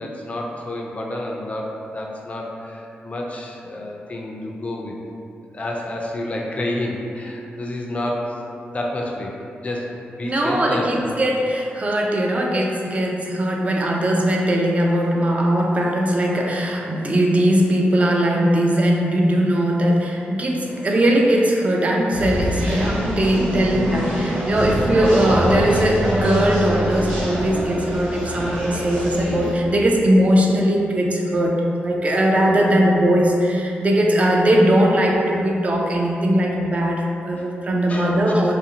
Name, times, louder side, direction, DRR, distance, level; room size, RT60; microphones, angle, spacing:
voice 1, 0.0-5.0 5.5-8.3 8.7-9.3 9.6-9.9 10.1-11.0 37.4-37.5 37.9-38.4, left 1 dB, 35° left, -1 dB, 0.4 m, -29 dB
voice 2, 10.2-31.6 31.8-38.5, right 1 dB, 35° right, 0 dB, 0.4 m, -19 dB
sound 1, 22.1-29.5, equal, 80° right, 0.8 m, -25 dB
2.5 x 2.4 x 2.7 m, 2.7 s
cardioid pair, 65°, 4 cm